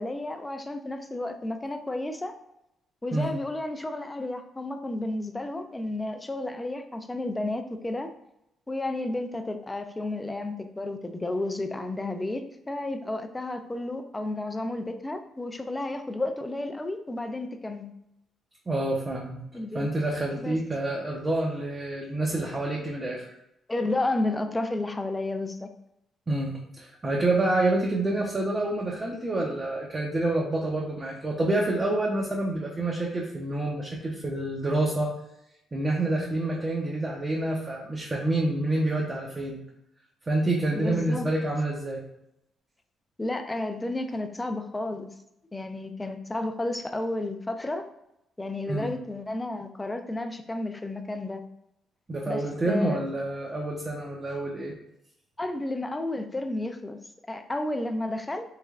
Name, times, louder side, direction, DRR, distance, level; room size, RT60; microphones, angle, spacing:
voice 1, 0.0-2.3 3.0-8.1 8.7-17.9 19.5-19.9 20.4-20.6 23.7-25.7 40.7-41.3 43.2-45.1 45.5-47.8 48.4-51.4 52.2-53.0 55.4-57.0 57.3-58.4, left 2 dB, 15° left, 7 dB, 0.4 m, -32 dB
voice 2, 18.7-19.4 19.7-23.3 26.3-35.1 35.7-39.6 40.3-42.0 48.7-48.9 52.1-54.7, right 2 dB, 25° right, -2 dB, 0.6 m, -28 dB
3.5 x 3.2 x 2.3 m, 0.81 s
cardioid pair, 90°, 0 cm